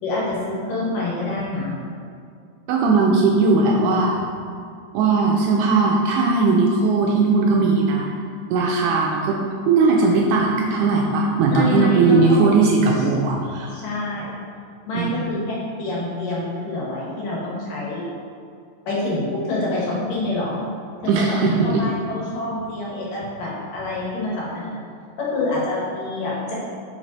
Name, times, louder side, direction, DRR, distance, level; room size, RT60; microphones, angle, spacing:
voice 1, 0.0-1.7 3.3-4.1 11.5-12.5 13.7-14.3 14.9-18.0 18.9-20.6 21.0-24.8 25.2-26.5, left 2 dB, 75° left, -6 dB, 3.0 m, -26 dB
voice 2, 2.7-4.2 4.9-8.1 8.5-9.4 9.7-13.8 14.9-15.3 21.1-21.9, right 3 dB, 80° right, -1 dB, 1.9 m, -18 dB
5.8 x 5.0 x 4.1 m, 2.3 s
omnidirectional pair, 3.9 m